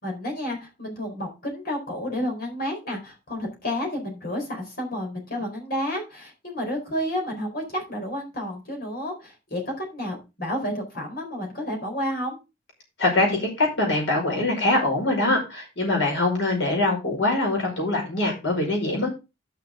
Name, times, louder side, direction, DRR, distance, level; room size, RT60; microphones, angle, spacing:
voice 1, 0.0-12.4, equal, 55° left, 2 dB, 4.5 m, -31 dB
voice 2, 13.0-19.2, left 2 dB, 80° left, 0 dB, 5.5 m, -23 dB
11.5 x 6.6 x 3.8 m, 0.27 s
head